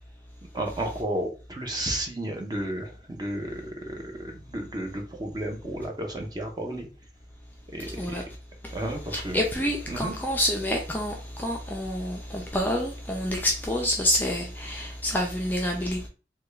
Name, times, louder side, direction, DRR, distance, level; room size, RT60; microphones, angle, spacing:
voice 1, 0.5-6.9 7.7-7.9 8.7-9.4 9.9-10.1, right 1 dB, 20° right, 0.7 m, -32 dB
voice 2, 7.8-8.2 9.1-16.1, left 1 dB, 10° left, 0.4 m, -28 dB
3.4 x 2.3 x 3.2 m
head